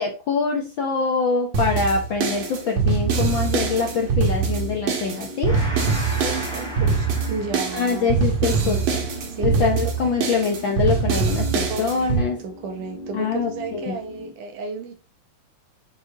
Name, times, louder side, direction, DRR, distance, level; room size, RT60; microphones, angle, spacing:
voice 1, 0.0-5.6 7.7-9.0 9.4-12.4 13.1-13.9, left 5 dB, 75° left, 1.1 m, -24 dB
sound 1, 1.5-12.2, right 5 dB, 60° right, 2.7 m, -23 dB
sound 2, 1.9-14.3, left 1 dB, 25° left, 1.2 m, -40 dB
Gong, 5.4-12.4, left 1 dB, 10° right, 2.6 m, -38 dB
voice 2, 6.2-8.2 8.6-8.9 9.3-9.7 11.7-15.0, right 4 dB, 85° right, 3.2 m, -33 dB
8.9 x 4.9 x 3.9 m
omnidirectional pair, 3.6 m